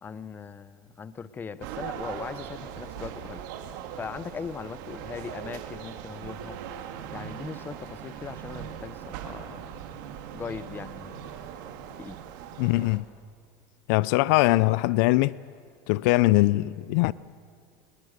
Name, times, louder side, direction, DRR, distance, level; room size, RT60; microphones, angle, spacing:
voice 1, 0.0-3.4 4.0-6.6 7.1-9.7 10.3-11.3 12.0-12.2, left 6 dB, 20° left, 0.7 m, -39 dB
sound 1, 1.6-13.0, right 9 dB, 75° right, 2.1 m, -40 dB
voice 2, 12.6-13.0 13.9-15.4 15.9-17.1, left 19 dB, 70° left, 0.5 m, -21 dB
27.0 x 21.5 x 6.6 m
supercardioid pair, 145°, 11 cm